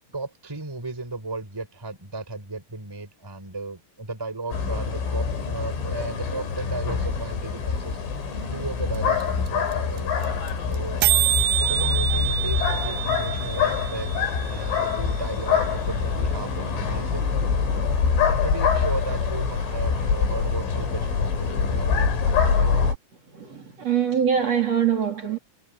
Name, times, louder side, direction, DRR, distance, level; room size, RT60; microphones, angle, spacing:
voice 1, 0.1-8.0 8.5-10.4 10.7-11.0 11.6-17.3 18.3-22.7, right 3 dB, 5° right, 3.9 m, -35 dB
sound 1, 4.5-23.0, left 6 dB, 75° left, 8.6 m, -25 dB
sound 2, 8.9-9.0 9.2-9.3 9.5-9.7 10.0-10.1 10.2-10.5 10.7-10.8 11.0-15.0, right 13 dB, 70° right, 2.4 m, -26 dB
voice 2, 23.3-25.4, right 8 dB, 35° right, 3.9 m, -23 dB
omnidirectional pair, 5.8 m